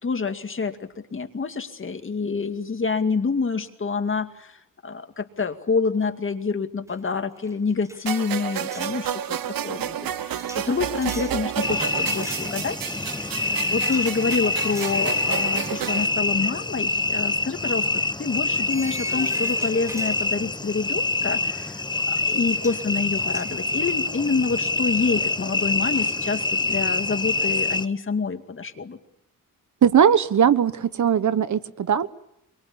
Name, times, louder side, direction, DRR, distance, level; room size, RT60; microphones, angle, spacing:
voice 1, 0.0-4.6 4.8-9.4 9.6-12.8 13.4-17.9 18.2-29.0, left 4 dB, 35° left, 7 dB, 2.3 m, -27 dB
sound 1, 6.9-7.1 7.4-9.0 10.4-11.4 12.1-12.9 13.8-14.1 14.6-15.1 15.5-15.7 17.2-17.3 18.7-20.8 22.1-22.2 22.5-22.8 23.2-24.6, right 1 dB, 10° right, 1.4 m, -41 dB
sound 2, 8.1-16.1, right 10 dB, 90° right, 1.1 m, -31 dB
sound 3, 11.6-27.8, left 3 dB, 15° left, 1.0 m, -26 dB
voice 2, 29.8-32.1, right 8 dB, 60° right, 14 dB, 1.2 m, -19 dB
25.5 x 23.5 x 8.6 m, 0.75 s
wide cardioid pair, 125°, 34 cm